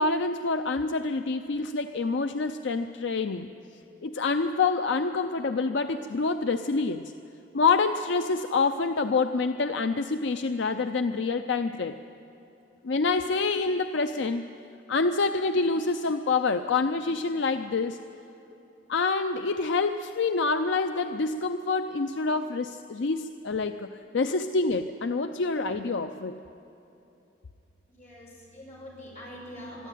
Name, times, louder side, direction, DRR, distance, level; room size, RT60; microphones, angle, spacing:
voice 1, 0.0-3.5 4.0-7.1 7.5-12.0 12.8-14.4 14.9-18.0 18.9-26.4, left 4 dB, 65° left, 8 dB, 0.5 m, -27 dB
voice 2, 27.9-29.9, equal, 35° left, -4 dB, 6.2 m, -44 dB
22.5 x 13.0 x 9.2 m, 2.9 s
head